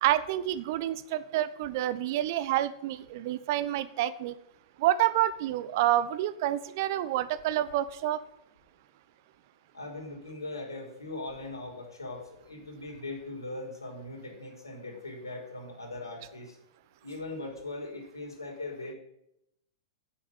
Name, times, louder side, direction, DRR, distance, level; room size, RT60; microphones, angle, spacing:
voice 1, 0.0-4.3 4.8-8.2, right 13 dB, 50° right, 16 dB, 1.0 m, -28 dB
voice 2, 9.7-16.6 17.0-19.0, left 2 dB, 85° left, 0 dB, 4.9 m, -40 dB
10.0 x 8.9 x 9.1 m, 0.79 s
figure-of-eight pair, 100°, 2 cm